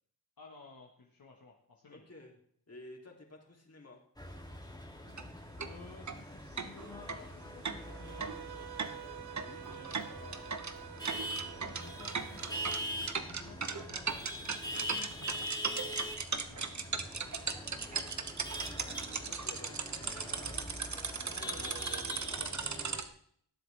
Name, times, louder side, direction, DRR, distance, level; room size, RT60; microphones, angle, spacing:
voice 1, 0.4-2.0 5.6-8.3 9.6-10.6 11.5-12.6 12.9-14.4 14.7-18.0 21.3-21.7, left 4 dB, 60° left, -1 dB, 1.6 m, -55 dB
voice 2, 1.9-2.4 2.7-4.0 9.4-9.6 19.2-20.6 21.4-23.0, left 2 dB, 40° left, 1 dB, 3.0 m, -53 dB
sound 1, 4.2-23.0, equal, 10° left, 2.2 m, -43 dB
sound 2, 5.1-5.2 5.6-5.7 6.1-6.2 6.6-23.1, right 5 dB, 45° right, 1.0 m, -38 dB
Bowed string instrument, 7.8-12.8, right 11 dB, 70° right, 0.7 m, -49 dB
18.5 x 7.8 x 3.4 m, 0.63 s
cardioid pair, 45°, 40 cm